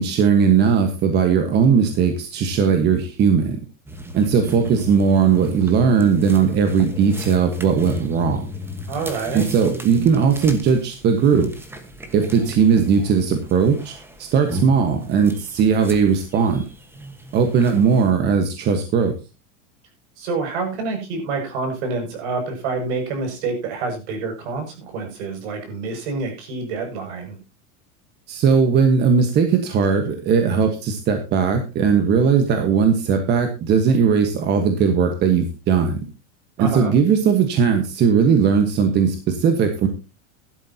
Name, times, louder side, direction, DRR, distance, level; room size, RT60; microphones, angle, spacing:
voice 1, 0.0-3.6 4.1-8.5 9.3-11.5 12.1-16.6 17.3-19.1 28.3-36.0 36.6-39.9, right 6 dB, 25° right, 6 dB, 1.4 m, -18 dB
sound 1, 3.9-18.1, left 1 dB, 5° right, 1.3 m, -35 dB
voice 2, 8.9-9.5 20.2-27.4 36.6-36.9, right 4 dB, 55° right, 4 dB, 6.7 m, -27 dB
16.0 x 12.0 x 2.9 m, 0.29 s
supercardioid pair, 165°, 41 cm